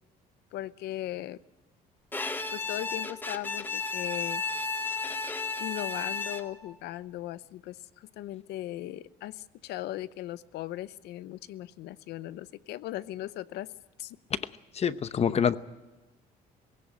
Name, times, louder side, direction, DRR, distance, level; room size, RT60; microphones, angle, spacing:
voice 1, 0.5-1.4 2.5-4.4 5.6-13.7 14.0-14.2, left 14 dB, 80° left, 17 dB, 0.7 m, -38 dB
Bowed string instrument, 2.1-6.7, left 4 dB, 10° left, 1.0 m, -33 dB
voice 2, 14.7-15.6, left 7 dB, 40° left, 14 dB, 0.9 m, -26 dB
19.5 x 16.5 x 10.0 m, 1.1 s
cardioid pair, 110°, 17 cm